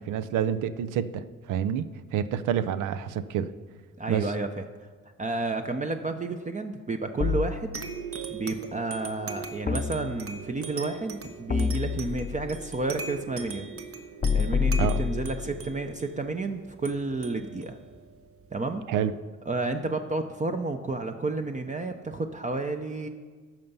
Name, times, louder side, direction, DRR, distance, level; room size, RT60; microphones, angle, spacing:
voice 1, 0.0-3.5 4.1-4.3 14.8-15.0 18.9-19.1, right 9 dB, 85° right, 12 dB, 0.6 m, -28 dB
voice 2, 4.0-4.6 5.2-7.8 8.3-13.7 14.3-17.8 18.5-18.8 19.5-23.1, right 3 dB, 25° right, 6 dB, 0.6 m, -31 dB
sound 1, 7.2-8.3 9.7-10.6 11.5-12.6 14.2-15.6, left 6 dB, 25° left, 0.6 m, -28 dB
sound 2, 7.7-18.8, right 5 dB, 50° right, 1.1 m, -40 dB
14.5 x 5.8 x 5.5 m, 1.5 s
cardioid pair, 90°, 30 cm